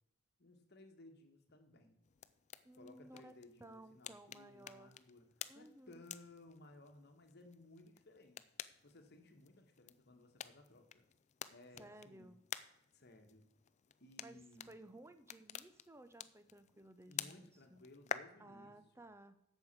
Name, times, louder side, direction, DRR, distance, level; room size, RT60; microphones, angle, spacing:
voice 1, 0.4-2.0 2.7-5.3 5.5-8.4 8.8-11.0 11.5-12.3 12.9-13.5 14.0-14.7 17.1-18.7, left 2 dB, 50° left, 5 dB, 1.5 m, -60 dB
sound 1, 2.0-18.2, left 9 dB, 30° left, 0.4 m, -51 dB
voice 2, 2.6-3.3 3.6-5.0 5.5-6.0 11.7-12.4 14.2-17.8 18.4-19.4, right 1 dB, 10° right, 11 dB, 0.6 m, -57 dB
8.3 x 6.4 x 8.2 m, 0.80 s
head